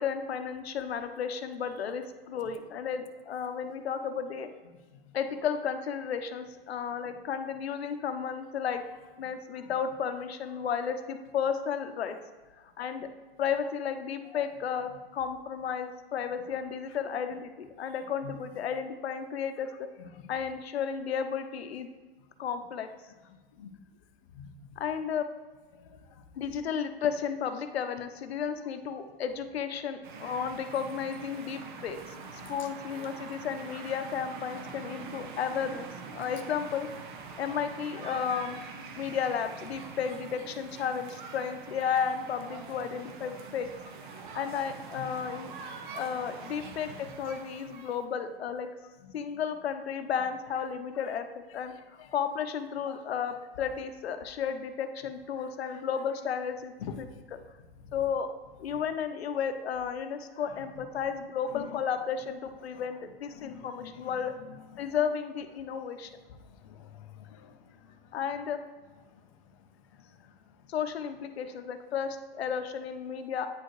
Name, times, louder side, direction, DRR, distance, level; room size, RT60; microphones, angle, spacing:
voice 1, 0.0-4.5 5.1-8.8 9.2-12.2 12.6-13.1 13.4-19.9 20.3-21.9 22.4-22.9 24.8-25.3 26.4-36.9 37.4-38.6 39.0-45.5 45.9-48.7 49.1-57.0 57.9-58.3 58.6-64.3 64.8-66.1 68.1-68.6 70.7-73.5, left 7 dB, 90° left, 8 dB, 0.7 m, -33 dB
voice 2, 20.0-20.3 20.8-20.9 23.3-23.8 24.3-24.8 25.7-26.2 32.4-32.8 37.3-37.4 38.5-38.7 45.0-45.1 46.7-47.1 48.8-49.1 50.9-51.1 51.5-52.1 52.8-53.0 53.3-53.4 55.4-55.8 56.8-57.1 57.7-58.0 58.7-58.8 60.3-60.8 61.5-61.8 62.6-63.0 63.3-65.0 65.6-65.8 66.2-68.2 69.0-70.7, left 7 dB, 35° left, 5 dB, 0.4 m, -49 dB
sound 1, 30.0-48.0, right 5 dB, 55° right, 0.8 m, -44 dB
8.9 x 4.5 x 3.1 m, 1.3 s
hypercardioid pair, 155°, 30 cm